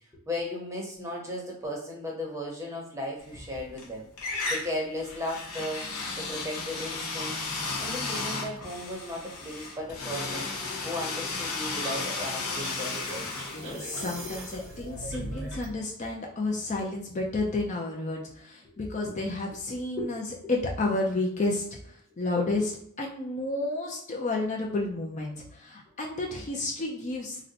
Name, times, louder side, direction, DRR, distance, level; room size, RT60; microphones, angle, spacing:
voice 1, 0.3-5.9 6.2-7.4 7.8-10.5 10.8-13.5 18.6-19.2 19.9-20.2 20.4-20.5 25.9-26.0, left 1 dB, 15° right, -2 dB, 0.7 m, -36 dB
sound 1, 3.3-3.9 4.2-15.0, left 3 dB, 85° left, 0.8 m, -34 dB
sound 2, 11.8-15.8, right 2 dB, 55° right, 0.6 m, -40 dB
voice 2, 13.5-27.5, left 2 dB, 30° left, 0 dB, 0.4 m, -31 dB
2.6 x 2.1 x 4.0 m, 0.67 s
head